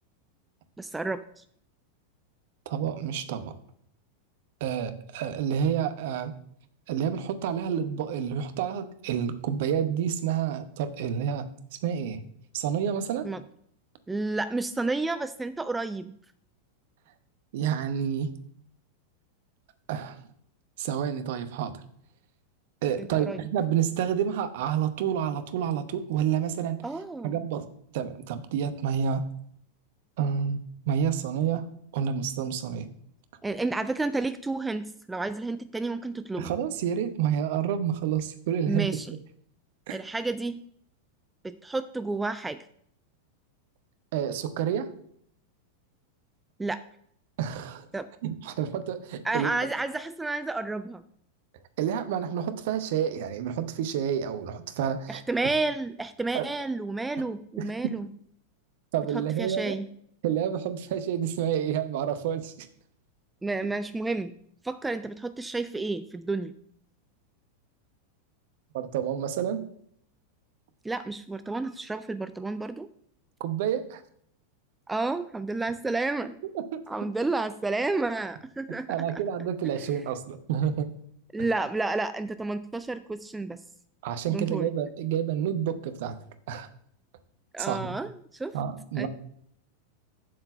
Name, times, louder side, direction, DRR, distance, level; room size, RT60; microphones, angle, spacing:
voice 1, 0.8-1.4 13.2-13.4 14.1-16.1 23.0-23.4 26.8-27.3 33.4-36.5 38.7-39.1 39.9-40.6 41.4-42.6 46.6-46.8 47.9-48.1 49.2-51.0 55.1-58.1 59.1-59.9 63.4-64.4 64.6-66.6 70.8-72.9 74.9-76.4 76.9-79.2 81.3-83.6 84.3-84.7 87.5-88.6 89.0-89.1, right 3 dB, 10° right, 11 dB, 0.4 m, -31 dB
voice 2, 2.7-3.5 4.6-6.3 6.9-11.5 11.7-12.2 12.5-13.3 17.5-18.3 19.9-20.2 20.8-21.8 22.8-26.8 27.2-27.6 27.9-29.2 30.2-30.6 30.9-31.7 31.9-32.9 36.4-38.9 39.9-40.0 44.1-44.9 47.4-47.9 48.2-49.5 51.8-55.2 56.3-56.5 57.6-57.7 58.9-59.8 60.2-62.7 68.7-69.6 73.4-74.0 76.5-76.8 78.9-80.9 84.0-86.2 86.5-86.7 87.6-87.9 88.5-89.1, right 8 dB, 50° right, 11 dB, 0.9 m, -29 dB
7.5 x 4.4 x 6.9 m, 0.66 s
figure-of-eight pair, 90°, 0 cm